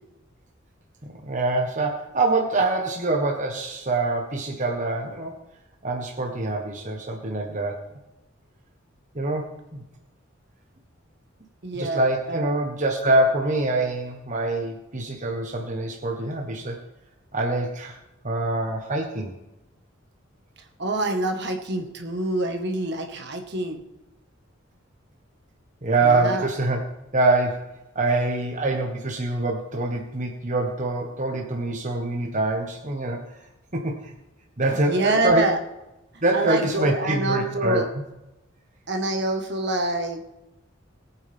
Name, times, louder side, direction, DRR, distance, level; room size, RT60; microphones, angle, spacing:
voice 1, 1.0-5.3 5.8-7.8 9.1-9.8 11.7-16.8 17.3-18.0 18.2-19.3 25.8-26.8 27.1-33.2 33.7-34.1 34.6-35.5 36.2-37.8, right 2 dB, 40° right, 1 dB, 1.4 m, -25 dB
voice 2, 11.6-12.0 12.3-12.5 20.8-23.8 26.0-26.5 34.9-35.6 36.3-37.9 38.9-40.2, right 2 dB, 60° right, 4 dB, 1.7 m, -26 dB
21.0 x 8.9 x 3.6 m, 0.96 s
head